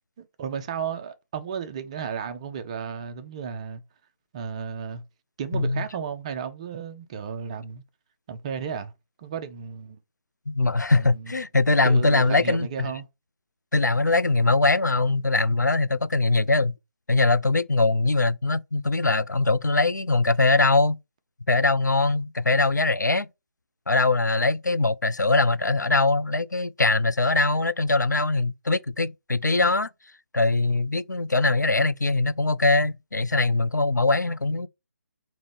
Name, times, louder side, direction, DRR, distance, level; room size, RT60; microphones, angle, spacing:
voice 1, 0.2-3.8 4.3-5.0 5.4-7.8 8.3-8.9 9.2-10.0 10.9-11.4 11.8-13.1, right 7 dB, 20° right, 0.4 m, -34 dB
voice 2, 5.5-5.9 10.5-12.7 13.7-16.7 17.1-21.0 21.5-23.3 23.9-29.9 30.3-34.7, left 3 dB, 85° left, 0.4 m, -22 dB
4.8 x 2.6 x 3.5 m
figure-of-eight pair, 145°, 9 cm